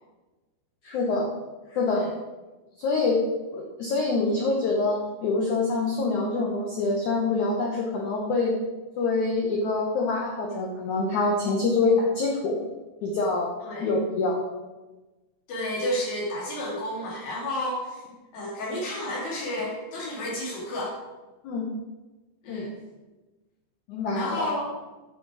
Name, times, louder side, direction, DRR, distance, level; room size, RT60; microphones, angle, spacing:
voice 1, 0.8-1.3 1.7-2.1 2.8-3.2 3.5-8.5 9.0-12.6 13.0-13.5 13.8-14.4 21.4-21.7 22.5-22.7 23.9-24.5, left 3 dB, 85° left, -1 dB, 1.6 m, -25 dB
voice 2, 15.5-18.0 18.3-21.0 22.4-22.7 24.1-24.7, left 1 dB, 60° left, -4 dB, 3.8 m, -31 dB
10.0 x 6.4 x 4.8 m, 1.2 s
omnidirectional pair, 5.0 m